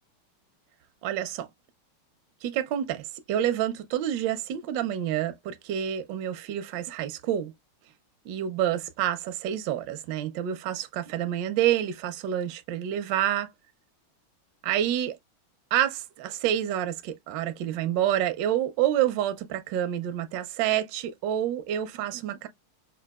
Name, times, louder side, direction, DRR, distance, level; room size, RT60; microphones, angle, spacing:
voice 1, 1.0-1.5 2.4-7.5 8.3-13.5 14.6-15.2 15.7-22.5, right 11 dB, 75° right, 1.0 m, -28 dB
5.4 x 2.2 x 2.2 m
omnidirectional pair, 2.4 m